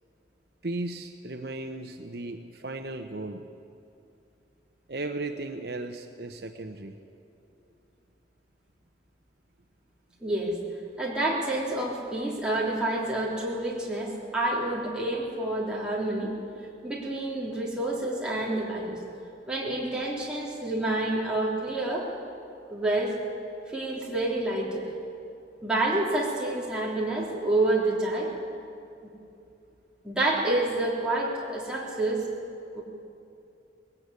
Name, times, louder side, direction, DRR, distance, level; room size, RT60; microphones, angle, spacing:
voice 1, 0.6-3.5 4.9-7.0 10.3-10.4, right 2 dB, 60° right, 5 dB, 1.0 m, -36 dB
voice 2, 10.2-10.6 11.0-16.3 16.8-19.0 19.5-22.1 22.7-23.2 23.7-24.9 25.6-28.3 30.0-32.3 32.7-32.8, right 2 dB, 5° right, -5 dB, 3.7 m, -28 dB
20.5 x 18.0 x 8.4 m, 2.7 s
head